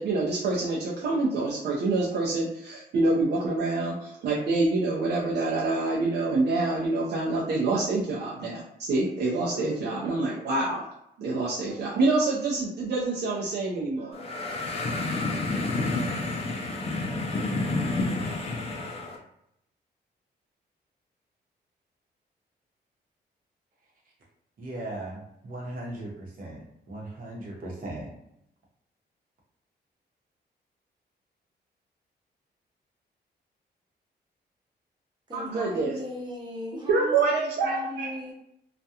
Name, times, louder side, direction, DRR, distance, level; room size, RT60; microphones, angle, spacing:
voice 1, 0.0-10.8 11.2-14.2 35.3-36.0 36.9-38.1, right 3 dB, 75° right, -5 dB, 0.5 m, -26 dB
sound 1, 14.1-19.2, left 2 dB, 35° left, 0.4 m, -29 dB
voice 2, 24.6-28.1, right 1 dB, 55° right, -3 dB, 0.8 m, -38 dB
voice 3, 35.3-38.3, left 1 dB, 25° right, -4 dB, 0.8 m, -37 dB
2.4 x 2.1 x 2.7 m, 0.78 s
wide cardioid pair, 155°, 17 cm